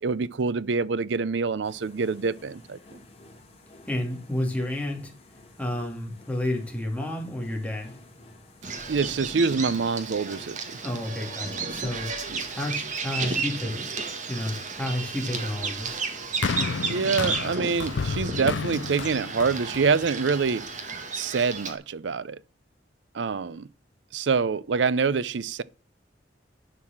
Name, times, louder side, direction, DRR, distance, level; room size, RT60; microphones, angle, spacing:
voice 1, 0.0-3.0 8.9-10.6 12.3-12.4 16.8-20.7 21.1-22.4 23.1-23.7 24.1-25.6, right 5 dB, 75° right, 0.5 m, -26 dB
sound 1, 1.6-21.0, left 2 dB, 35° left, 3.1 m, -51 dB
voice 2, 3.9-5.1 5.6-8.0 10.8-12.1 12.5-13.9 14.3-16.0, left 1 dB, 10° left, 2.4 m, -31 dB
Bird vocalization bird call bird song, 8.6-21.7, right 4 dB, 45° right, 1.8 m, -33 dB
sound 2, 16.4-20.8 21.6-21.7, left 5 dB, 80° left, 0.5 m, -32 dB
11.0 x 4.8 x 7.3 m
head